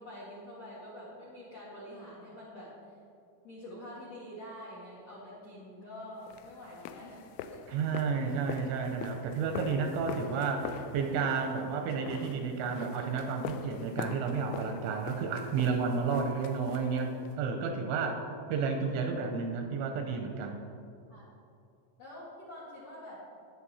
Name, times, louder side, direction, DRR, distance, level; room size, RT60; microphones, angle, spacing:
voice 1, 0.0-2.7 3.4-7.6 21.1-21.3 22.0-23.3, left 1 dB, 60° left, -6 dB, 1.7 m, -46 dB
sound 1, 6.3-17.4, left 7 dB, 85° left, 2.7 m, -43 dB
voice 2, 7.7-18.2 18.5-20.6, right 5 dB, 85° right, 4 dB, 2.9 m, -31 dB
13.0 x 9.5 x 4.2 m, 2.6 s
omnidirectional pair, 5.9 m